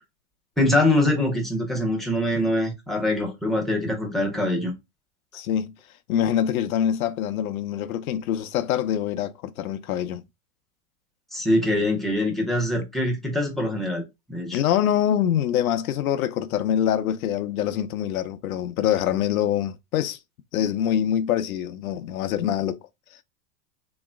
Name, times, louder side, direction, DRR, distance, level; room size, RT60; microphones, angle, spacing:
voice 1, 0.6-4.7 11.3-14.6, left 1 dB, ahead, 1.2 m, -24 dB
voice 2, 5.3-5.7 6.1-10.2 14.5-20.2 20.5-22.8, left 10 dB, 70° left, 0.8 m, -25 dB
3.6 x 3.1 x 3.6 m
hypercardioid pair, 135°, 45 cm